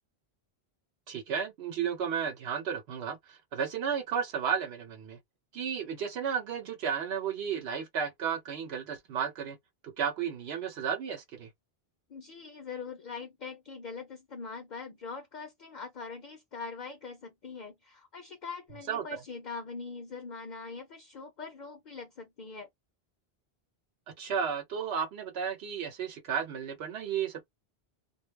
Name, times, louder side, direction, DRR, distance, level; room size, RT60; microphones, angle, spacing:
voice 1, 1.1-5.2 5.5-9.6 10.0-11.5 18.9-19.2 24.2-27.5, right 7 dB, 80° right, 0.8 m, -33 dB
voice 2, 12.1-22.7, left 4 dB, 55° left, 0.6 m, -42 dB
2.2 x 2.0 x 3.1 m
omnidirectional pair, 1.0 m